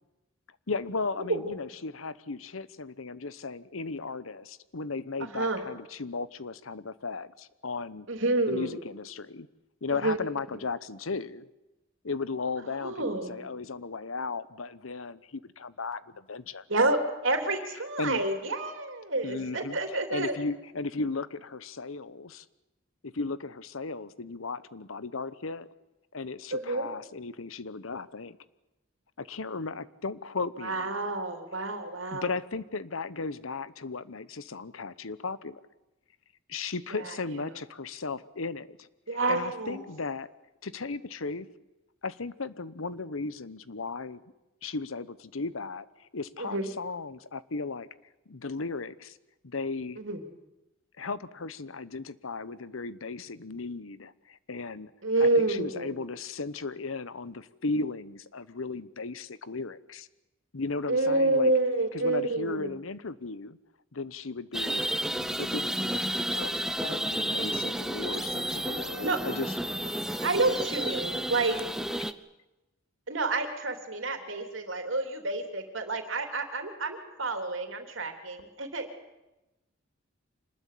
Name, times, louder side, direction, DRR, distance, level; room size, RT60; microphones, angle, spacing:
voice 1, 0.7-8.1 8.5-9.5 9.8-11.5 12.0-16.6 18.0-18.2 19.2-22.4 23.0-25.7 26.1-28.4 29.2-31.0 32.1-35.6 36.5-38.9 39.3-40.3 40.6-41.5 42.0-44.2 44.6-47.9 48.3-49.2 49.4-50.0 51.0-54.9 55.2-60.1 60.5-61.5 61.9-63.6 63.9-64.9 65.4-69.6, left 3 dB, 85° left, 16 dB, 1.0 m, -36 dB
voice 2, 8.1-8.8 10.0-10.2 12.8-13.4 16.7-20.4 26.5-26.9 30.6-32.3 37.0-37.1 39.1-39.8 46.4-46.7 50.0-50.2 55.0-55.9 60.9-62.7 69.0-69.2 70.2-71.6 73.1-78.9, right 2 dB, 65° right, 6 dB, 3.4 m, -28 dB
sound 1, 64.5-72.1, right 1 dB, 5° right, 0.8 m, -31 dB
26.0 x 20.0 x 8.5 m, 0.99 s
head